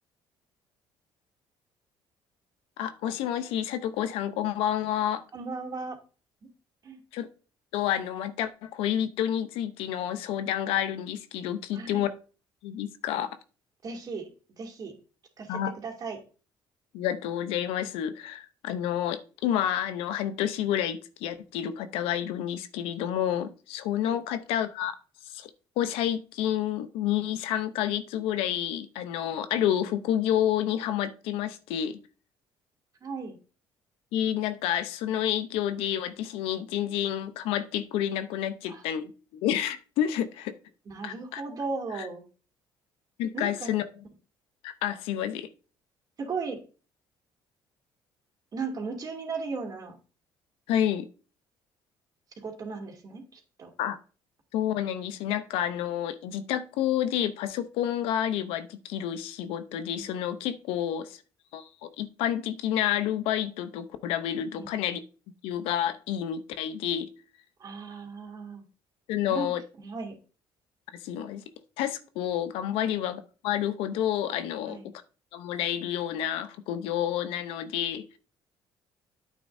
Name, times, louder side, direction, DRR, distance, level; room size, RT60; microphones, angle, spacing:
voice 1, 2.8-5.2 7.1-7.3 7.7-12.1 12.6-13.4 15.5-15.7 16.9-24.9 25.3-25.5 25.8-32.0 34.1-40.6 41.0-41.4 41.9-42.1 43.2-43.9 44.6-45.5 50.7-51.1 53.8-54.0 54.5-61.2 61.5-61.7 62.0-65.0 65.4-67.1 69.1-69.6 71.0-71.4 71.8-74.8 75.3-78.2, left 10 dB, 90° left, 12 dB, 0.8 m, -29 dB
voice 2, 5.3-6.0 6.8-7.0 11.7-12.0 13.8-14.2 14.6-14.9 15.4-16.2 24.0-24.2 33.0-33.3 38.7-38.8 40.9-42.2 43.3-43.7 46.2-46.6 48.5-49.9 52.4-53.7 60.0-60.2 64.6-64.7 67.6-68.6 69.3-69.5 69.8-70.1 74.7-74.9, right 4 dB, 45° right, 2 dB, 2.6 m, -36 dB
9.9 x 8.5 x 2.7 m, 0.36 s
cardioid pair, 100°, 9 cm